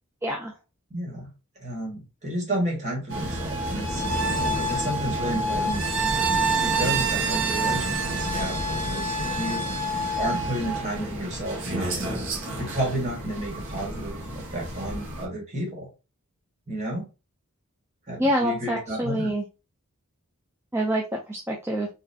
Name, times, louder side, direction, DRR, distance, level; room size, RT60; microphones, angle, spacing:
voice 1, 0.2-0.5 18.2-19.4 20.7-21.9, equal, 10° right, 0 dB, 0.4 m, -26 dB
voice 2, 0.9-1.3 1.6-4.0 4.7-9.7 10.2-12.2 12.5-15.9 16.7-17.1 18.1-19.3, right 1 dB, 30° right, -3 dB, 1.6 m, -32 dB
sound 1, 3.1-15.3, right 2 dB, 55° right, 1.0 m, -28 dB
3.9 x 2.6 x 2.7 m, 0.29 s
head